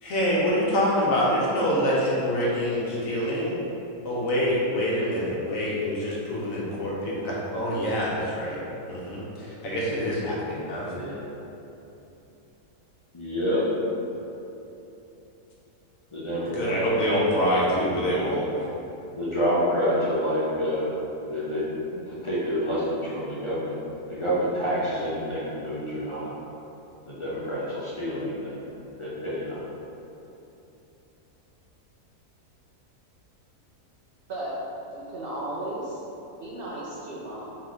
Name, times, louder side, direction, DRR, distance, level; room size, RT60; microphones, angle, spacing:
voice 1, 0.0-3.5 4.0-8.6 8.9-10.9 16.5-18.4, equal, 60° left, -5 dB, 1.2 m, -25 dB
voice 2, 13.1-13.6 16.1-16.8 19.2-20.9 21.2-21.6 21.9-23.8 24.1-26.3 27.1-28.6 29.0-29.6, equal, 45° left, -8 dB, 0.4 m, -28 dB
voice 3, 34.9-36.0 36.4-37.6, right 1 dB, 60° right, -7 dB, 0.6 m, -35 dB
4.3 x 3.1 x 3.9 m, 3.0 s
omnidirectional pair, 1.7 m